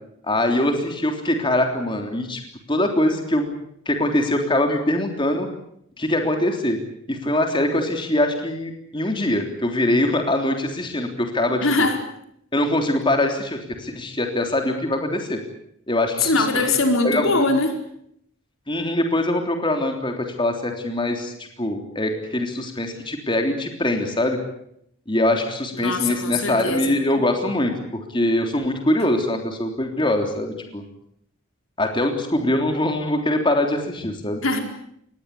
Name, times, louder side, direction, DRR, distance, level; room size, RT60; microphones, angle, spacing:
voice 1, 0.2-2.4 2.7-3.5 3.8-5.5 6.0-6.8 7.1-11.9 12.5-15.4 15.9-16.7 17.0-17.4 18.7-21.3 21.6-24.4 25.1-30.8 31.8-34.4, left 1 dB, 25° left, 4 dB, 3.4 m, -23 dB
voice 2, 11.6-12.0 16.2-17.8 25.7-26.9 34.4-34.6, left 3 dB, 80° left, 4 dB, 4.8 m, -21 dB
26.0 x 20.0 x 8.4 m, 0.72 s
head